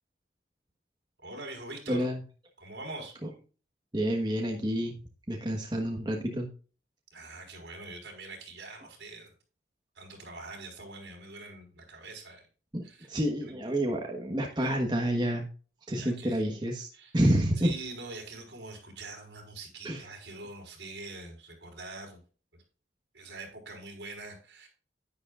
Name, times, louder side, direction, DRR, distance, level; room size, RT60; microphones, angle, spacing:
voice 1, 1.2-2.1 2.6-3.1 7.1-9.3 9.9-12.5 12.8-13.1 13.5-13.6 14.6-14.7 15.9-16.4 16.9-17.1 17.6-22.2 22.5-22.6 23.1-24.7, right 2 dB, 75° right, 2 dB, 4.4 m, -44 dB
voice 2, 1.9-2.2 3.9-5.0 5.3-6.5 12.7-15.5 15.9-16.9 17.1-17.7 19.8-20.0, right 1 dB, 25° right, 1 dB, 1.3 m, -28 dB
10.5 x 9.7 x 2.5 m, 0.37 s
head